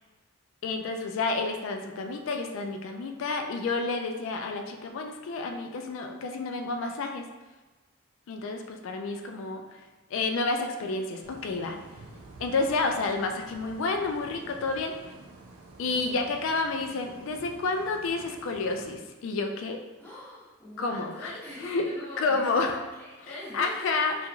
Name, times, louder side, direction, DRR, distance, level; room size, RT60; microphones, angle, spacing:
voice 1, 0.6-7.2 8.3-9.6 10.1-11.8 12.4-15.0 15.8-19.8 20.8-21.9 22.2-22.8 23.5-24.2, left 3 dB, 70° left, 4 dB, 0.3 m, -30 dB
sound 1, 11.2-19.0, right 2 dB, 90° right, 0.4 m, -49 dB
voice 2, 15.9-16.3 20.0-23.9, left 1 dB, 10° left, -9 dB, 0.8 m, -43 dB
2.9 x 2.4 x 2.4 m, 1.2 s
head